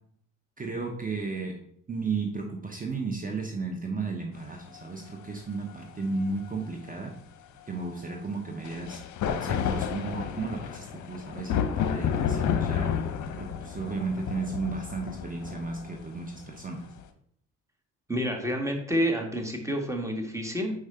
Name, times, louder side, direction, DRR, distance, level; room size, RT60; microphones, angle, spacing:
voice 1, 0.6-1.6 1.9-7.1 7.7-16.8, right 4 dB, 25° right, 2 dB, 0.9 m, -34 dB
sound 1, 4.7-4.8 8.6-17.0, left 8 dB, 55° left, 0.8 m, -31 dB
voice 2, 18.1-20.7, equal, 10° right, 3 dB, 1.5 m, -29 dB
4.8 x 4.7 x 4.3 m, 0.67 s
supercardioid pair, 70°, 35 cm